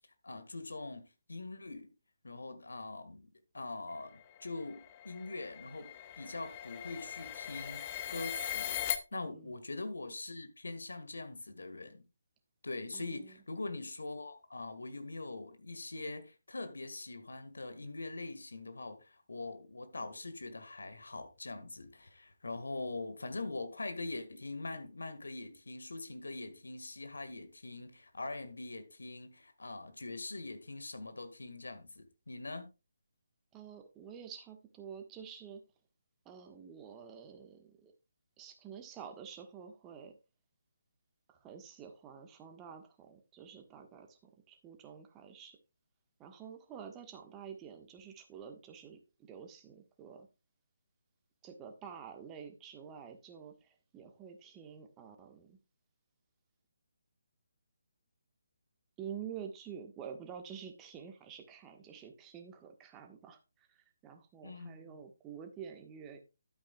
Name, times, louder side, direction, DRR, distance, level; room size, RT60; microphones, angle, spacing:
voice 1, 0.2-1.9 2.2-3.3 3.5-8.8 9.1-12.0 12.6-32.7 64.4-65.0, left 2 dB, 70° left, 1.8 m, -43 dB
sound 1, 4.2-9.0, left 11 dB, 25° left, 0.8 m, -40 dB
voice 2, 9.1-9.5 12.9-13.4 33.5-35.6 36.2-37.9 38.4-40.2 41.3-45.6 46.2-50.3 51.4-55.6 59.0-66.2, right 7 dB, 15° right, 1.4 m, -49 dB
12.0 x 8.7 x 2.4 m
figure-of-eight pair, 145°, 0 cm